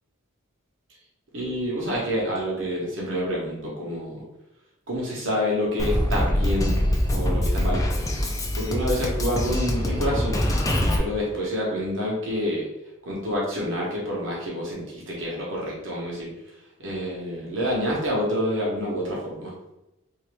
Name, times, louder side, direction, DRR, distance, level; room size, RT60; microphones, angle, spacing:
voice 1, 1.3-4.2 4.9-7.8 8.5-10.4 11.0-12.7 13.0-16.3 16.8-19.5, equal, 70° right, -4 dB, 1.0 m, -28 dB
Drum kit, 5.8-11.0, left 1 dB, 15° left, 0.3 m, -24 dB
3.0 x 2.7 x 3.3 m, 0.93 s
head